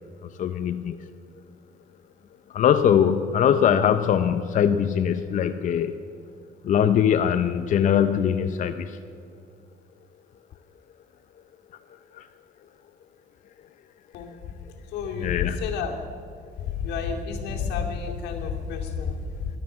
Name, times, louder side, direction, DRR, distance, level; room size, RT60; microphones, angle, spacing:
voice 1, 0.2-1.0 2.5-6.0 6.6-9.0 12.1-12.3 15.1-15.7, left 8 dB, 50° left, 9 dB, 0.6 m, -22 dB
voice 2, 14.9-15.9 16.8-19.5, left 6 dB, 85° left, 2 dB, 2.4 m, -30 dB
13.0 x 12.0 x 8.7 m, 2.4 s
cardioid pair, 110°, 17 cm